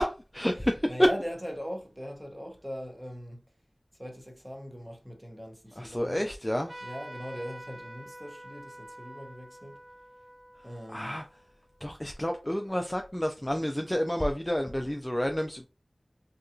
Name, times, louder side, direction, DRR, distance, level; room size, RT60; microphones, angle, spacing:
voice 1, 0.0-1.1 5.8-6.7 10.9-11.2 11.8-15.7, equal, 15° left, 0.3 m, -29 dB
voice 2, 0.8-3.4 4.0-6.2 6.8-9.8 10.6-11.2, equal, 10° right, 0.8 m, -40 dB
Trumpet, 6.7-11.8, right 1 dB, 60° right, 0.7 m, -47 dB
2.8 x 2.3 x 2.5 m
wide cardioid pair, 40°, 0 cm